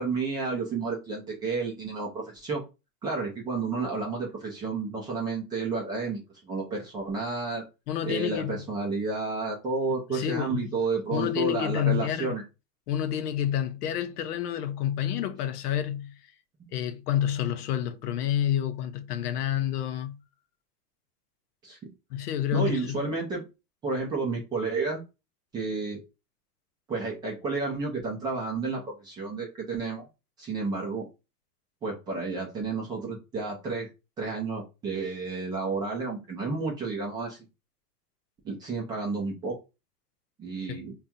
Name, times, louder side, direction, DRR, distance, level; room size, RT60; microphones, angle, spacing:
voice 1, 0.0-2.6 3.0-7.6 8.0-12.4 21.6-21.9 22.5-23.4 23.8-25.0 25.5-26.0 26.9-30.0 30.4-31.1 31.8-33.9 34.2-37.4 38.4-39.6 40.4-40.9, right 4 dB, 10° right, 0.4 m, -31 dB
voice 2, 7.9-8.7 10.1-10.8 11.1-12.4 12.9-16.1 16.7-20.2 22.1-23.1 40.7-40.8, left 10 dB, 70° left, 0.8 m, -29 dB
5.4 x 2.3 x 2.6 m
supercardioid pair, 140°, 48 cm